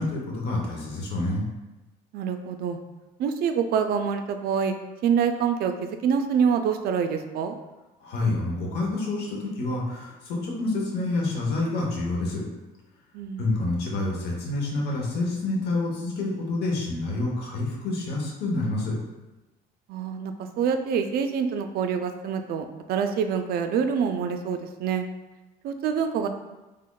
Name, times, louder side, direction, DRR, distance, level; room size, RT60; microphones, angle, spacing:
voice 1, 0.0-1.4 8.0-12.4 13.4-19.0, left 2 dB, 80° left, -2 dB, 1.0 m, -28 dB
voice 2, 2.1-2.8 3.2-4.7 5.0-7.6 13.1-13.5 19.9-25.1 25.6-26.3, right 7 dB, 65° right, 7 dB, 0.4 m, -26 dB
3.6 x 3.4 x 2.3 m, 1.1 s
cardioid pair, 110°, 17 cm